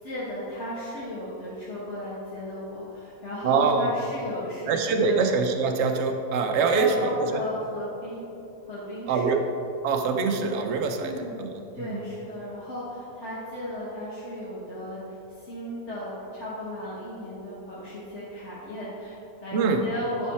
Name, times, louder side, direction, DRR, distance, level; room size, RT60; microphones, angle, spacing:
voice 1, 0.0-5.2 6.7-8.3 8.7-9.3 11.0-11.3 11.7-20.3, equal, 50° left, -9 dB, 1.8 m, -35 dB
voice 2, 3.4-3.9 4.7-7.4 9.1-9.4 9.8-12.0 19.5-19.8, right 4 dB, 60° right, 4 dB, 0.9 m, -24 dB
10.5 x 5.5 x 4.3 m, 2.8 s
omnidirectional pair, 1.5 m